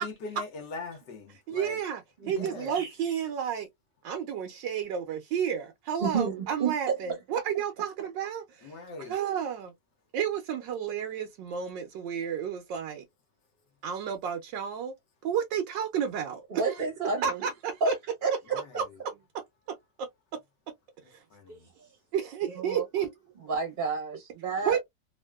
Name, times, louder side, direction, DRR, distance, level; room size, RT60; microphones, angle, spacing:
voice 1, 0.0-1.8 2.2-2.7 8.6-9.2 21.0-21.7, left 3 dB, 75° left, 1.6 m, -41 dB
voice 2, 1.5-2.0 2.3-3.7 4.0-9.7 10.1-13.0 13.8-14.9 15.2-16.6 17.2-17.9 20.0-20.1 21.1-21.2 22.1-23.1 24.7-24.8, right 8 dB, 90° right, 1.3 m, -31 dB
voice 3, 6.0-7.2 16.5-17.5 17.8-17.9 18.2-18.3 21.5-22.0 22.6-22.8 23.4-24.8, right 4 dB, 40° right, 0.8 m, -30 dB
3.5 x 2.5 x 2.2 m
omnidirectional pair, 1.9 m